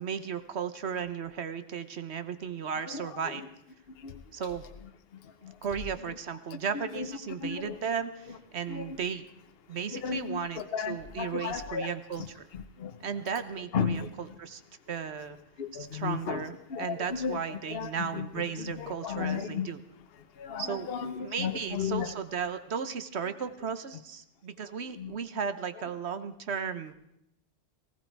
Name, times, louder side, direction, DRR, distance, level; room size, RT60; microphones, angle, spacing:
voice 1, 0.0-3.4 4.3-4.7 5.6-9.3 9.7-10.6 10.9-12.5 13.0-14.6 14.9-15.4 15.7-19.8 20.6-20.9 21.2-26.9, right 7 dB, 60° right, 11 dB, 1.2 m, -35 dB
voice 2, 5.2-5.6 6.9-7.1 7.4-7.8 8.7-8.9 9.9-11.9 12.2-12.3 12.5-13.0 13.7-14.1 15.6-16.4 16.7-18.2 18.6-19.7 20.4-22.1 25.0-25.1, left 7 dB, 55° left, 8 dB, 1.1 m, -34 dB
19.0 x 16.5 x 4.6 m, 0.77 s
omnidirectional pair, 1.3 m